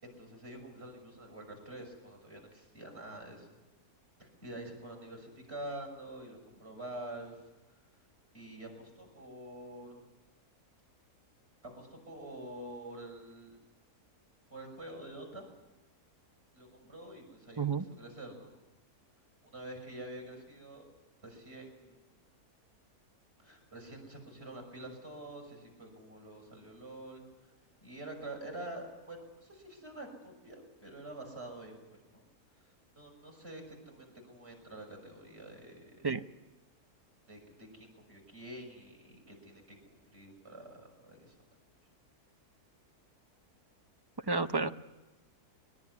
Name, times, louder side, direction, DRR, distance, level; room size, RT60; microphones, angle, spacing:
voice 1, 0.0-3.5 4.2-7.4 8.3-10.0 11.6-13.6 14.5-15.5 16.5-18.5 19.4-20.8 21.2-22.1 23.4-27.2 27.8-32.2 32.9-36.1 37.3-41.3, right 1 dB, 40° right, 1 dB, 6.6 m, -47 dB
voice 2, 44.3-44.7, right 4 dB, 25° right, 8 dB, 0.5 m, -30 dB
23.0 x 20.5 x 9.7 m, 1.1 s
omnidirectional pair, 1.6 m